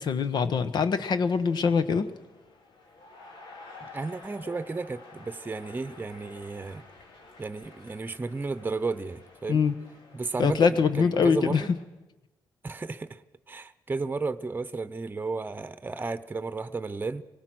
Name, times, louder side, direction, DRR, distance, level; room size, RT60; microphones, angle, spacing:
voice 1, 0.0-2.1 9.5-9.7 10.4-11.6, left 6 dB, 65° left, 1.3 m, -23 dB
sound 1, 1.8-11.8, left 3 dB, 85° left, 3.1 m, -50 dB
voice 2, 3.8-6.8 7.4-9.6 10.1-11.7 12.6-13.2 13.5-17.2, right 3 dB, 25° right, 0.9 m, -33 dB
24.5 x 18.5 x 6.2 m
cardioid pair, 95°, 8 cm